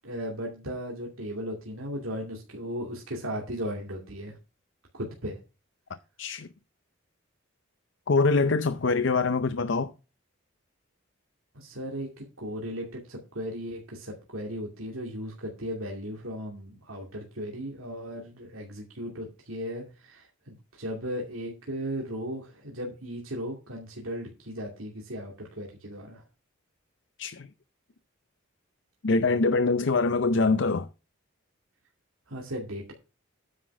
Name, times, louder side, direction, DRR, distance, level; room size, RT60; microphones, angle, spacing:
voice 1, 0.0-4.4 4.9-5.4 11.5-26.2 32.3-32.9, equal, 90° right, 2.5 m, -36 dB
voice 2, 8.1-9.9 27.2-27.5 29.0-30.9, left 3 dB, 60° left, 0.6 m, -24 dB
9.7 x 5.9 x 6.0 m
head